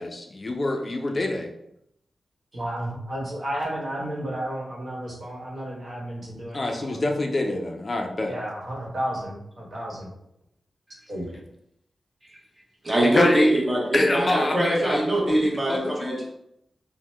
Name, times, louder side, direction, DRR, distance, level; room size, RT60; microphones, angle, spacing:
voice 1, 0.0-1.5 6.5-8.3 13.1-13.5 13.9-15.0 15.4-16.2, left 2 dB, 35° left, 3 dB, 0.3 m, -26 dB
voice 2, 2.5-7.0 8.3-10.1 11.1-11.2, right 1 dB, 60° right, -5 dB, 1.1 m, -32 dB
voice 3, 12.8-16.3, right 1 dB, 20° right, -3 dB, 0.8 m, -22 dB
2.8 x 2.0 x 3.2 m, 0.79 s
wide cardioid pair, 115°, 0 cm